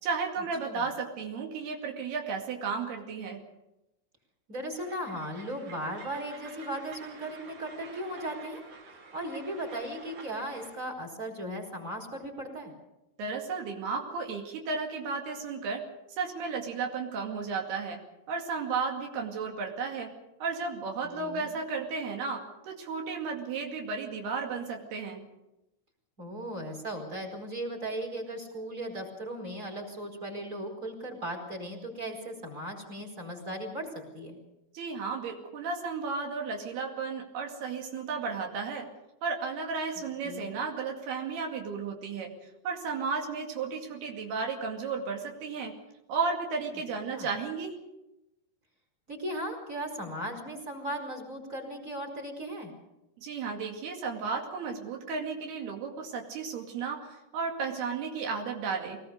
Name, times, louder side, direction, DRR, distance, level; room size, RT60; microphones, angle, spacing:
voice 1, 0.0-3.4 13.2-15.8 16.2-18.0 18.3-20.1 20.4-25.2 34.7-38.9 39.2-42.3 42.6-45.7 46.1-47.8 53.2-59.0, right 5 dB, 85° right, 2 dB, 4.4 m, -33 dB
voice 2, 4.5-8.6 9.1-12.7 21.0-21.5 26.2-33.9 34.1-34.4 40.2-40.5 47.0-47.3 49.1-52.7, right 1 dB, 20° right, 2 dB, 4.6 m, -37 dB
Train, 4.8-10.8, right 4 dB, 55° right, 4.0 m, -49 dB
23.0 x 19.0 x 6.7 m, 0.92 s
omnidirectional pair, 4.5 m